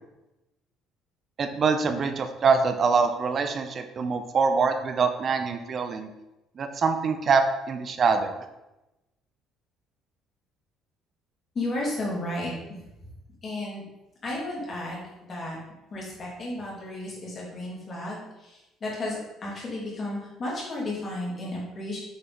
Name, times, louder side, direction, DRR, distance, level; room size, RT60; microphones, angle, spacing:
voice 1, 1.4-6.1 6.6-8.4, right 5 dB, 35° right, 8 dB, 0.6 m, -24 dB
voice 2, 11.5-12.5 13.4-13.8 14.2-15.6 15.9-22.0, left 1 dB, 30° left, -5 dB, 2.7 m, -33 dB
8.5 x 4.4 x 4.3 m, 0.98 s
cardioid pair, 160°, 0 cm